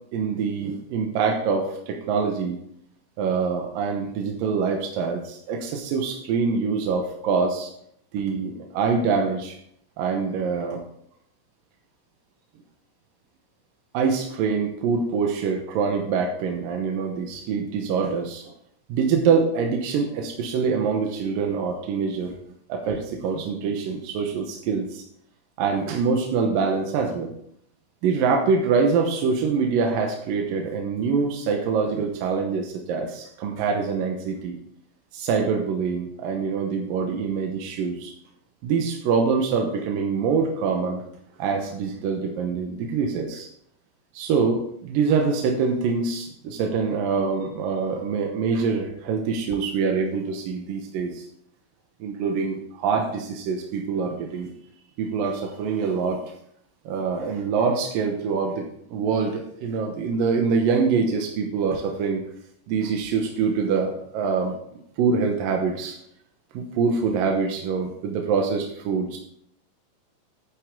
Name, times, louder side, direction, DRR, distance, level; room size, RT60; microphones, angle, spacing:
voice 1, 0.1-2.6 3.2-7.7 8.1-9.5 10.0-10.8 13.9-18.5 18.9-22.3 22.7-25.0 25.6-27.3 28.0-34.6 35.1-38.1 38.6-41.0 41.4-43.5 44.1-51.3 52.0-54.5 55.0-56.2 56.9-62.2 62.7-64.6 65.0-66.0 66.5-69.2, right 5 dB, 75° right, 2 dB, 2.7 m, -25 dB
11.0 x 8.4 x 3.7 m, 0.69 s
omnidirectional pair, 4.1 m